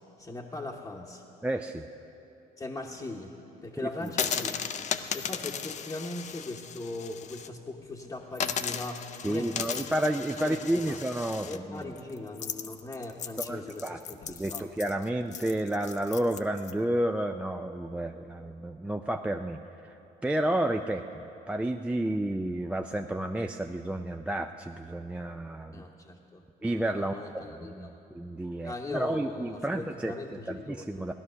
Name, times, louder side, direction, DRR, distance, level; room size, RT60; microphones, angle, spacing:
voice 1, 0.2-1.2 2.6-9.9 10.4-11.0 11.5-14.7 25.7-27.9 28.6-31.0, left 2 dB, 20° left, -3 dB, 1.0 m, -40 dB
voice 2, 1.4-1.9 4.0-4.1 9.2-11.9 13.4-14.0 14.3-25.8 26.6-31.1, right 1 dB, 5° right, 5 dB, 0.4 m, -31 dB
sound 1, 4.1-7.5 7.8-7.9 8.3-16.7, left 8 dB, 45° left, 0.6 m, -36 dB
16.5 x 11.0 x 6.2 m, 2.9 s
cardioid pair, 110°, 17 cm